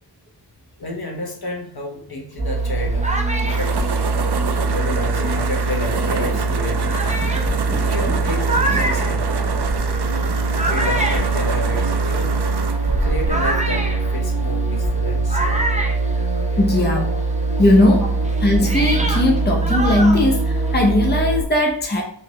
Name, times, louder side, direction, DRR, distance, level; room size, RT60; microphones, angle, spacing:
voice 1, 0.8-4.0 4.7-7.0 7.8-9.2 10.1-12.3 13.0-15.7 16.5-17.2 17.6-17.7, left 2 dB, 60° left, 0 dB, 1.4 m, -31 dB
sound 1, 2.4-21.4, right 3 dB, 90° right, 1.8 m, -22 dB
sound 2, 2.5-5.6 6.2-6.3 6.8-16.9 17.2-20.9, right 1 dB, 15° right, 0.8 m, -28 dB
sound 3, 2.7-14.5, right 5 dB, 70° right, 0.6 m, -28 dB
voice 2, 16.6-17.0 17.6-18.1 18.4-22.0, left 1 dB, 25° left, 0 dB, 0.9 m, -18 dB
4.8 x 3.4 x 3.1 m, 0.63 s
wide cardioid pair, 65°, 42 cm